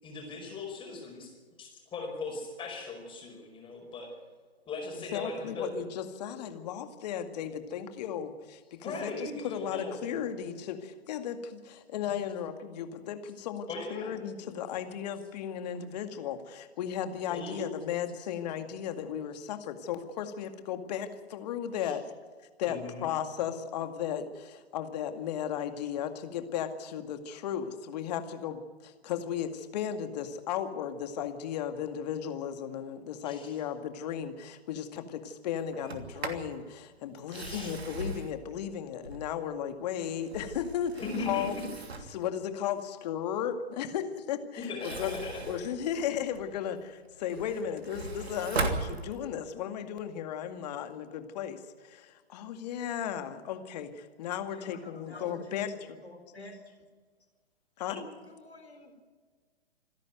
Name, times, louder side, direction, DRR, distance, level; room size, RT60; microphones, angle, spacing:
voice 1, 0.0-4.1 4.7-5.7 8.8-10.1 12.1-12.2 13.7-14.5 17.3-17.7 21.8-22.0 22.6-23.1 33.2-33.6 37.3-37.7 41.0-41.7 44.6-45.4 57.9-58.0, left 3 dB, 15° left, 1 dB, 5.4 m, -39 dB
voice 2, 5.1-22.1 22.6-41.7 42.1-45.2 45.5-56.0 57.8-58.0, left 9 dB, 40° left, 8 dB, 2.1 m, -35 dB
Sliding door, 35.7-36.5 37.2-39.5 40.1-42.2 44.6-46.6 47.0-49.5, right 3 dB, 75° right, 3.0 m, -38 dB
voice 3, 54.3-55.6 56.0-56.8 58.2-58.9, left 1 dB, 90° left, 5 dB, 4.1 m, -49 dB
27.5 x 10.5 x 9.3 m, 1.5 s
figure-of-eight pair, 130°, 32 cm